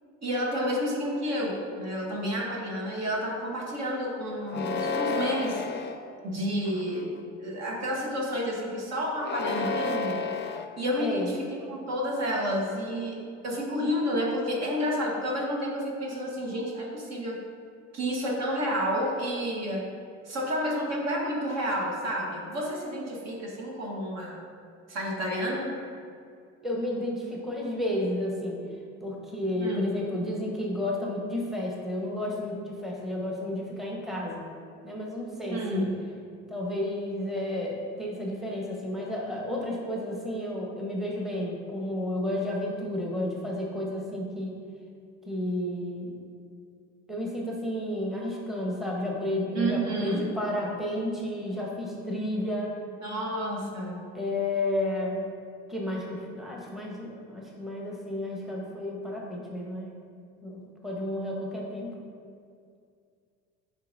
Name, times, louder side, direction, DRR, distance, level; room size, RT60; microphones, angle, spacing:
voice 1, 0.2-5.6 6.2-7.1 7.4-10.2 10.8-11.4 11.7-17.4 17.9-19.9 20.2-24.4 24.9-25.7 29.6-29.9 35.5-36.0 49.5-50.3 53.0-54.1, equal, 45° right, -1 dB, 1.4 m, -30 dB
sound 1, 4.5-6.0 6.7-7.2 9.2-10.7, left 4 dB, 30° left, 0.6 m, -31 dB
voice 2, 11.0-11.3 26.6-28.6 29.0-34.4 34.8-35.9 36.5-44.6 45.3-46.2 47.1-52.7 54.1-55.2 55.7-59.9 60.4-62.0, left 1 dB, ahead, -2 dB, 1.2 m, -32 dB
7.4 x 5.1 x 2.7 m, 2.3 s
hypercardioid pair, 65°, 37 cm